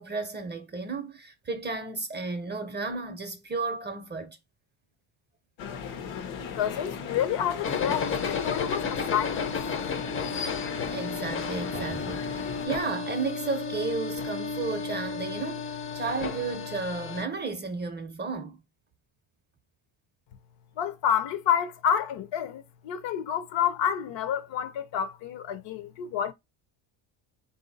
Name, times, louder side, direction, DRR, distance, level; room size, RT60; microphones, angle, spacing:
voice 1, 0.0-4.4 10.9-15.7 15.9-18.6, right 4 dB, 20° right, 0.5 m, -33 dB
sound 1, 5.6-12.7, left 6 dB, 80° left, 1.1 m, -37 dB
voice 2, 6.5-9.5 20.8-26.3, left 9 dB, 60° left, 0.8 m, -29 dB
sound 2, 7.6-17.2, left 5 dB, 25° left, 0.5 m, -33 dB
3.8 x 2.7 x 3.9 m
cardioid pair, 145°, 49 cm